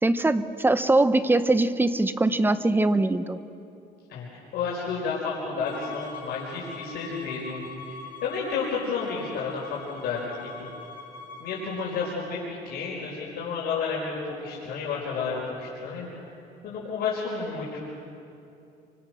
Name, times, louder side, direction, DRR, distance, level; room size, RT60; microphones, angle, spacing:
voice 1, 0.0-3.4, right 2 dB, 10° right, 11 dB, 1.1 m, -22 dB
voice 2, 4.1-10.7 11.4-16.1 16.6-17.8, left 5 dB, 70° left, -4 dB, 5.1 m, -31 dB
Bowed string instrument, 5.6-12.1, left 5 dB, 90° left, 4.0 m, -43 dB
28.0 x 25.0 x 6.5 m, 2.7 s
cardioid pair, 110°, 17 cm